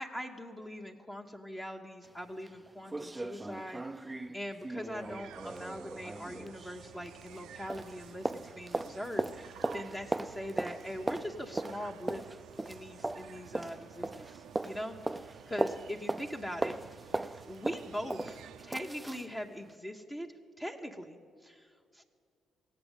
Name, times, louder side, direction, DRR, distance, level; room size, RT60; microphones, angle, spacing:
voice 1, 0.0-3.8 4.3-12.2 12.7-16.7 17.5-20.3 20.6-22.0, equal, 15° left, 3 dB, 0.9 m, -41 dB
sound 1, 2.0-2.1 2.5-2.6 2.9-7.4 7.7-19.3 19.7-19.8, right 2 dB, 15° right, 0.3 m, -38 dB
sound 2, 4.8-19.1, right 9 dB, 90° right, 0.4 m, -53 dB
17.0 x 8.1 x 8.1 m, 2.3 s
cardioid pair, 90°, 0 cm